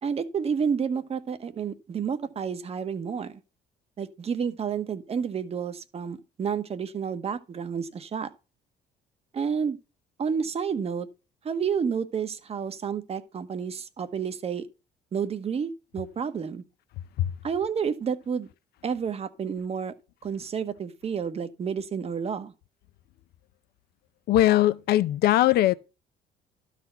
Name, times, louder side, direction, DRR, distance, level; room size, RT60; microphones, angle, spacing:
voice 1, 0.0-3.3 4.0-8.3 9.3-9.8 10.2-11.1 11.4-14.7 15.1-16.6 17.4-18.5 18.8-19.9 20.2-22.5, right 6 dB, 35° right, 1.0 m, -30 dB
voice 2, 24.3-25.8, left 13 dB, 70° left, 0.6 m, -20 dB
12.5 x 4.2 x 5.6 m
cardioid pair, 110°, 17 cm